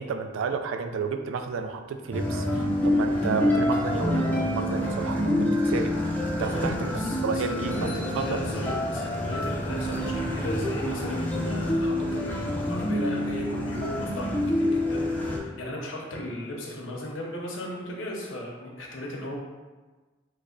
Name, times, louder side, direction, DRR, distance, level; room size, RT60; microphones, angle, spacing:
voice 1, 0.0-6.9 7.2-8.4, right 5 dB, 90° right, 7 dB, 0.3 m, -32 dB
sound 1, 2.1-15.4, left 1 dB, 10° left, 0.4 m, -27 dB
voice 2, 6.4-19.4, left 1 dB, 85° left, -1 dB, 0.7 m, -36 dB
3.3 x 2.1 x 3.8 m, 1.3 s
head